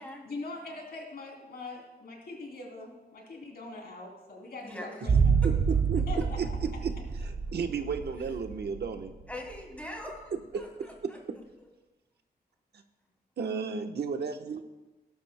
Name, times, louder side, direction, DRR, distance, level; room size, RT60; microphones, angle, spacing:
voice 1, 0.2-5.3 6.1-6.6, left 2 dB, 65° left, 0 dB, 3.0 m, -42 dB
voice 2, 4.6-5.0 5.4-5.5 9.3-11.2, left 1 dB, 10° left, -1 dB, 2.5 m, -42 dB
sound 1, 5.1-9.3 9.6-9.7, right 6 dB, 50° right, 1.7 m, -27 dB
voice 3, 7.5-9.1 13.4-14.6, right 5 dB, 75° right, 5 dB, 1.0 m, -33 dB
19.0 x 12.0 x 2.2 m, 1.1 s
wide cardioid pair, 140°, 17 cm